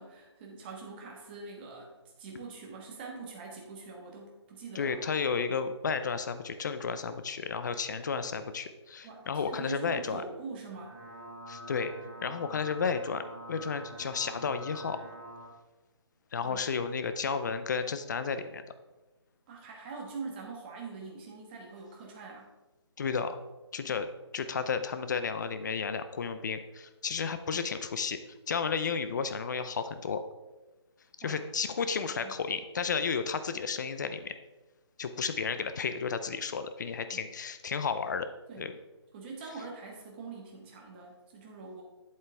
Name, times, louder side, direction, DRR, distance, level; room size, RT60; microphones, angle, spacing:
voice 1, 0.0-1.9 2.2-5.0 9.0-11.0 16.4-16.6 19.5-22.5 31.2-31.4 31.8-32.4 37.1-37.2 38.5-38.7 39.1-41.8, right 4 dB, 20° right, 0 dB, 1.3 m, -44 dB
voice 2, 4.7-10.2 11.5-11.9 12.2-13.2 13.5-15.0 16.3-18.6 23.0-23.4 23.7-24.1 24.3-28.2 28.5-30.2 31.2-34.3 35.0-38.3 38.6-38.7, left 5 dB, 40° left, 10 dB, 0.6 m, -32 dB
sound 1, 10.6-15.5, equal, ahead, 2.0 m, -46 dB
8.3 x 7.8 x 3.4 m, 1.1 s
hypercardioid pair, 160°, 15 cm